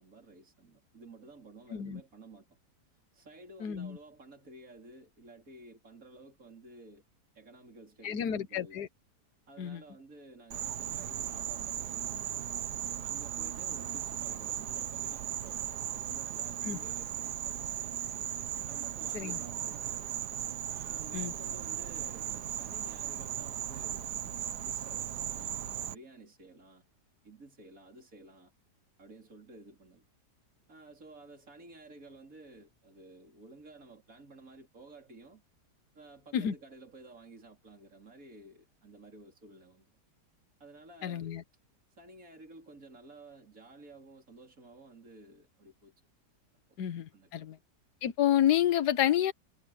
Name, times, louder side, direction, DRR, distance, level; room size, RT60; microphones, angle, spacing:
voice 1, 0.0-2.5 3.1-7.0 7.3-8.8 9.5-12.6 13.0-18.1 18.7-20.1 20.7-25.6 25.8-26.8 27.2-28.5 29.0-30.0 30.7-35.4 35.9-39.9 40.6-41.4 42.0-45.9 46.7-46.8 47.1-47.5, right 2 dB, 50° right, 4.6 m, -53 dB
voice 2, 3.6-4.0 8.0-8.9 9.6-9.8 16.6-16.8 19.1-19.4 21.1-21.3 36.3-36.5 41.0-41.4 46.8-47.6 48.0-49.3, left 10 dB, 75° left, 1.5 m, -29 dB
Insect, 10.5-25.9, right 10 dB, 75° right, 1.5 m, -37 dB
omnidirectional pair, 1.8 m